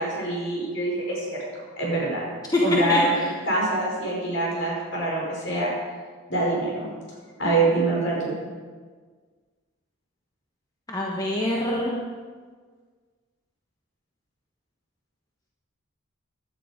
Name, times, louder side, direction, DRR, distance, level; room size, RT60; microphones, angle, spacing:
voice 1, 0.0-1.4 1.8-2.2 2.6-3.2 3.4-5.7 6.3-6.9 7.4-8.3, right 2 dB, 60° left, -3 dB, 5.1 m, -25 dB
voice 2, 2.9-3.3 10.9-12.0, left 1 dB, 15° left, -3 dB, 1.4 m, -25 dB
16.0 x 11.0 x 5.1 m, 1.5 s
head